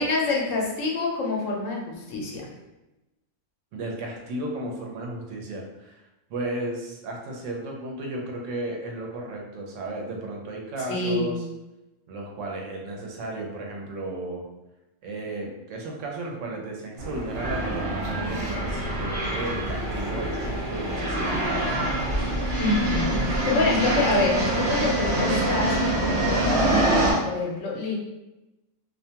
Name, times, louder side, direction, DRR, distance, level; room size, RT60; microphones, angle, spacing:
voice 1, 0.0-2.4 10.9-11.4 22.6-25.8 26.4-28.0, left 3 dB, 80° left, -2 dB, 1.0 m, -26 dB
voice 2, 3.7-6.0 6.3-11.5 12.1-14.4 15.0-21.5 23.3-23.8, right 2 dB, 75° right, 0 dB, 0.9 m, -34 dB
sound 1, 17.0-27.1, right 1 dB, 50° right, 1.0 m, -25 dB
sound 2, 20.2-25.2, right 2 dB, 30° right, 0.6 m, -44 dB
2.5 x 2.2 x 2.8 m, 0.99 s
omnidirectional pair, 1.3 m